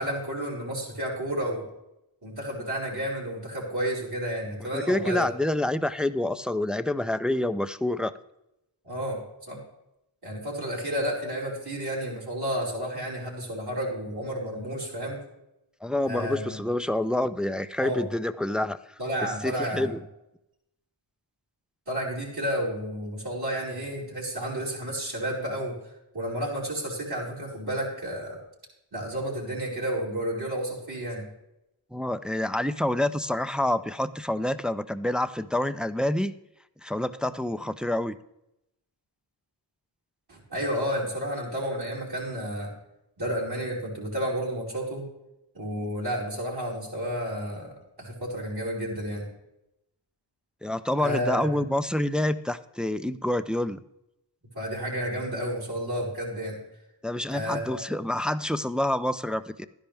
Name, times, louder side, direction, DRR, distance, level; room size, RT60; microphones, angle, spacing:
voice 1, 0.0-1.6 2.2-5.3 8.8-9.2 9.5-9.6 10.2-15.2 16.0-16.6 17.8-18.1 19.0-20.0 21.9-25.7 26.1-28.4 28.9-31.2 40.3-42.7 43.2-45.0 45.5-47.7 48.0-49.3 51.0-51.6 54.5-56.6 57.3-57.8, equal, 55° right, -5 dB, 4.5 m, -31 dB
voice 2, 4.6-8.1 15.8-18.8 19.2-20.0 31.9-36.3 36.8-38.2 50.6-53.8 57.0-59.7, left 1 dB, ahead, 11 dB, 0.4 m, -27 dB
12.0 x 10.5 x 3.4 m, 0.86 s
cardioid pair, 60°, 46 cm